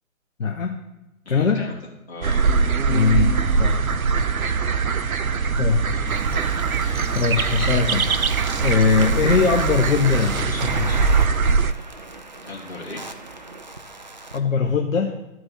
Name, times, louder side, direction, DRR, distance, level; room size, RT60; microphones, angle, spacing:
voice 1, 0.4-0.8 1.3-1.6 2.9-3.8 4.6-4.7 5.6-5.8 6.7-11.1 14.3-15.1, left 5 dB, 70° left, 2 dB, 0.9 m, -21 dB
voice 2, 1.2-1.8 2.1-2.4 6.2-7.1 12.4-13.0, left 2 dB, 50° left, -2 dB, 2.3 m, -38 dB
sound 1, 2.2-11.7, right 5 dB, 90° right, 0.6 m, -22 dB
sound 2, 3.3-11.6, left 1 dB, ahead, 2.5 m, -42 dB
sound 3, 6.1-14.4, right 2 dB, 35° right, 0.4 m, -37 dB
12.5 x 4.3 x 4.3 m, 0.98 s
figure-of-eight pair, 135°, 41 cm